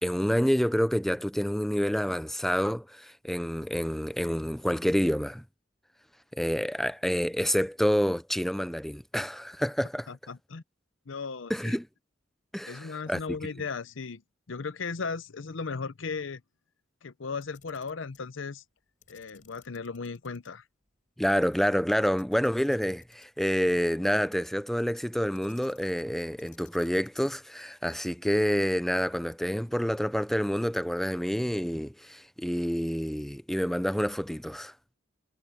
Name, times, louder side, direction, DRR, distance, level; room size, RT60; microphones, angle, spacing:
voice 1, 0.0-5.4 6.3-10.1 11.5-11.9 12.5-13.2 21.2-34.7, equal, ahead, 0.5 m, -28 dB
voice 2, 10.1-10.6 11.1-11.8 12.7-14.2 14.5-16.4 17.0-18.6 19.1-20.6, left 4 dB, 70° left, 0.7 m, -36 dB
Camera, 17.4-18.3 19.0-20.5 20.8-20.9 21.9-23.5 25.3-26.1 26.4-27.6, left 8 dB, 40° left, 4.7 m, -60 dB
head